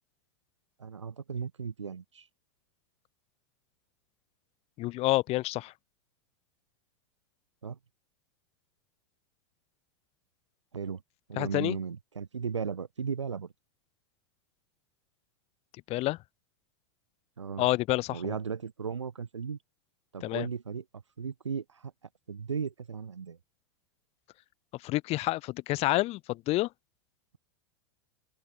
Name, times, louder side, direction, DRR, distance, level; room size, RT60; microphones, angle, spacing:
voice 1, 0.8-2.3 7.6-7.8 10.7-11.0 11.3-13.5 17.4-17.7 18.1-19.6 20.1-20.8 21.2-21.9 22.3-23.4, right 6 dB, 90° right, 3.9 m, -36 dB
voice 2, 4.8-5.7 11.4-11.8 15.9-16.2 17.6-18.4 20.2-20.5 24.8-26.7, left 19 dB, 45° left, 3.7 m, -28 dB
open air
hypercardioid pair, 100°, 15 cm